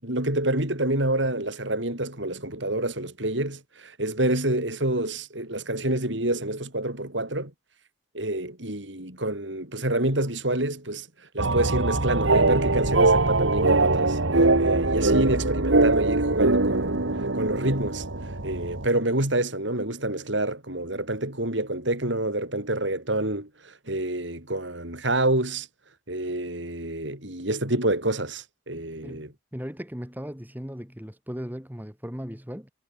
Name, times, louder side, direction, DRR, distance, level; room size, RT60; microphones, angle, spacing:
voice 1, 0.0-7.5 8.1-11.1 11.3-17.0 17.3-18.0 18.4-25.7 26.1-29.3, right 1 dB, 70° right, 7.0 m, -27 dB
sound 1, 11.4-18.9, right 2 dB, 90° right, 2.1 m, -22 dB
voice 2, 29.0-32.7, equal, 10° right, 3.8 m, -37 dB
head